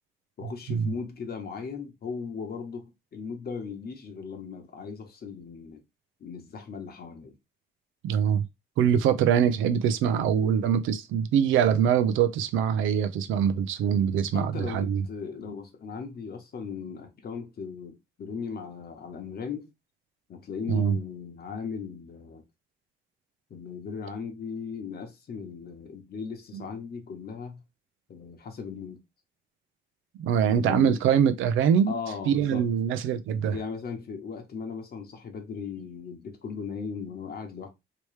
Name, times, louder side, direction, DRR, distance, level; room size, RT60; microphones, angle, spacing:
voice 1, 0.4-5.8 6.2-7.3 14.3-19.7 20.3-22.4 23.5-27.6 28.1-29.0 30.4-31.0 31.9-32.7 33.5-37.7, left 5 dB, 50° left, 1.1 m, -37 dB
voice 2, 8.0-8.5 8.8-15.0 20.7-20.9 26.5-26.6 30.2-32.0 32.3-33.6, right 8 dB, 85° right, 0.5 m, -23 dB
3.1 x 3.0 x 3.2 m
cardioid pair, 90°, 20 cm